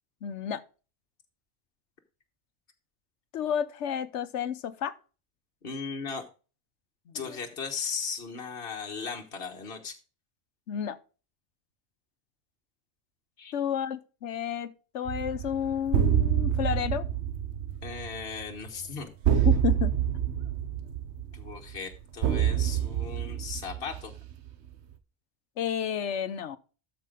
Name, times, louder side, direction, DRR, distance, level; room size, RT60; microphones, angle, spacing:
voice 1, 0.2-0.6 3.3-5.0 7.1-7.4 10.7-11.0 13.5-17.1 19.5-19.9 25.6-26.6, left 8 dB, 85° left, 1.1 m, -31 dB
voice 2, 5.6-6.2 7.1-10.0 13.4-13.5 17.8-19.5 21.3-24.1, left 5 dB, 60° left, 1.5 m, -37 dB
sound 1, 15.1-24.5, right 9 dB, 75° right, 1.1 m, -27 dB
13.0 x 5.0 x 3.6 m
omnidirectional pair, 1.2 m